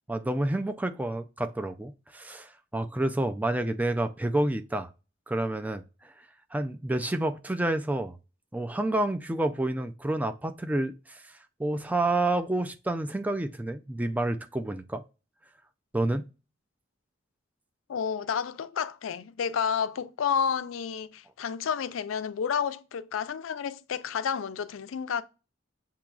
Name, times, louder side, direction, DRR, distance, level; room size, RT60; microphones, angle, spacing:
voice 1, 0.1-4.9 5.3-6.1 6.5-8.2 8.5-11.2 11.6-15.0 15.9-16.3, right 1 dB, 10° right, 0.4 m, -29 dB
voice 2, 17.9-25.2, left 7 dB, 85° left, 0.4 m, -30 dB
7.2 x 2.9 x 2.3 m
head